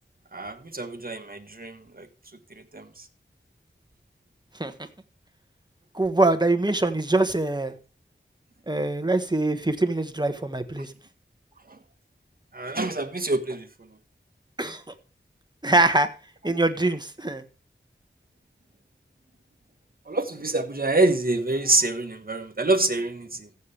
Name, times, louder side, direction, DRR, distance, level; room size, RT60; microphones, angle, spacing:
voice 1, 0.3-2.1 2.7-2.9 12.5-13.7 20.1-23.5, right 2 dB, 45° right, 1.6 m, -26 dB
voice 2, 5.9-7.7 8.7-10.9 14.6-14.8 15.6-16.1 16.4-17.4, right 2 dB, 20° right, 1.4 m, -23 dB
15.0 x 7.1 x 3.5 m
wide cardioid pair, 40°, 20 cm